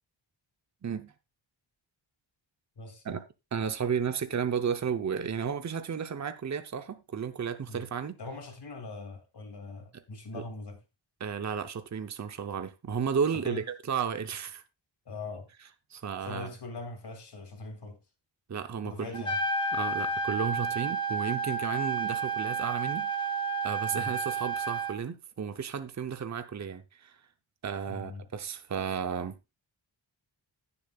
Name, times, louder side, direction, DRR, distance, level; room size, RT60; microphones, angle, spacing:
voice 1, 0.8-1.1 3.0-3.2 3.5-8.2 10.3-10.4 11.2-14.6 15.9-16.5 18.5-19.2 19.7-23.4 23.6-27.2 27.6-29.4, right 7 dB, 35° right, 0.8 m, -33 dB
voice 2, 2.8-3.2 7.7-7.9 8.2-10.8 13.4-13.6 15.1-15.5 16.2-18.0 18.8-19.4 23.9-24.2 27.9-28.3, left 3 dB, 55° left, 2.6 m, -41 dB
Trumpet, 19.1-24.9, right 3 dB, 10° left, 1.2 m, -31 dB
16.5 x 7.0 x 2.4 m
wide cardioid pair, 170°, 47 cm